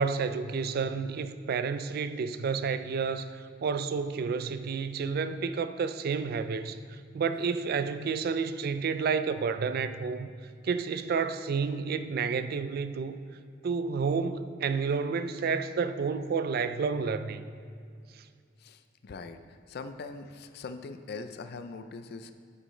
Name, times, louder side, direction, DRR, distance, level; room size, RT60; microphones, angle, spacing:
voice 1, 0.0-10.3 10.6-13.2 13.6-17.4, right 5 dB, 50° right, 11 dB, 0.4 m, -30 dB
voice 2, 18.6-22.3, left 4 dB, 55° left, 9 dB, 0.4 m, -42 dB
9.1 x 8.2 x 3.2 m, 2.2 s
head